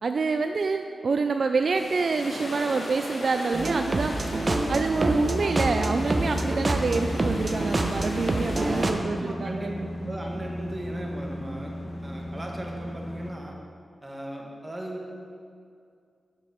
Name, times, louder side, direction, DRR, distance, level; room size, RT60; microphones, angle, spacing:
voice 1, 0.0-4.2 4.7-10.2, right 4 dB, 65° right, 6 dB, 0.3 m, -27 dB
sound 1, 1.7-8.9, left 1 dB, 65° left, 1.6 m, -38 dB
sound 2, 3.5-8.9, right 2 dB, 40° right, 0.8 m, -27 dB
sound 3, 5.2-13.3, equal, 35° left, 1.0 m, -36 dB
voice 2, 9.2-9.7 10.0-11.7 12.0-13.6 14.0-15.1, right 1 dB, 25° right, 0 dB, 1.6 m, -37 dB
7.8 x 7.3 x 5.0 m, 2.3 s
cardioid pair, 50°, 0 cm